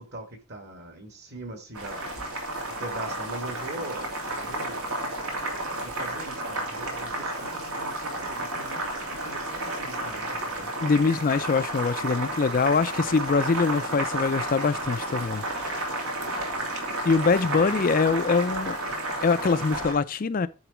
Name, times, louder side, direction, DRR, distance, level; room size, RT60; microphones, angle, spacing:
voice 1, 0.0-2.2 2.8-5.0 5.8-10.9, right 1 dB, 45° right, 2.1 m, -41 dB
Boiling, 1.7-20.0, right 1 dB, 80° right, 3.0 m, -32 dB
voice 2, 10.8-15.9 17.0-18.8 19.2-20.5, left 4 dB, 40° left, 0.4 m, -24 dB
10.0 x 3.9 x 6.1 m
head